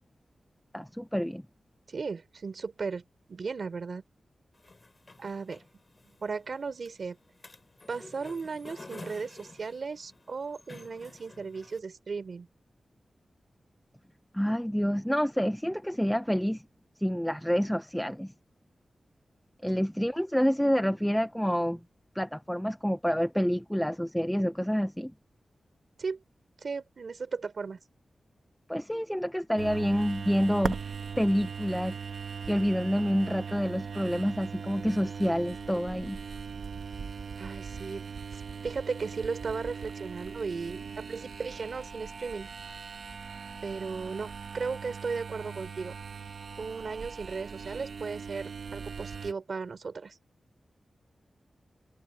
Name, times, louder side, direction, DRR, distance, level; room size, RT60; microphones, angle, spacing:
voice 1, 0.7-1.4 14.3-16.6 17.0-18.3 19.6-21.8 22.2-25.1 28.7-30.8 31.2-32.0 32.5-36.2, equal, ahead, 0.5 m, -28 dB
voice 2, 1.9-3.0 3.3-4.0 5.2-5.6 6.0-7.2 7.9-12.5 19.7-19.8 26.0-26.2 26.6-27.8 37.4-38.0 38.3-42.5 43.6-45.9 46.6-50.2, right 4 dB, 50° right, 3.5 m, -36 dB
sound 1, 4.5-11.8, left 3 dB, 25° left, 7.5 m, -51 dB
sound 2, 29.6-49.3, right 6 dB, 70° right, 1.3 m, -40 dB
wide cardioid pair, 175°, 0 cm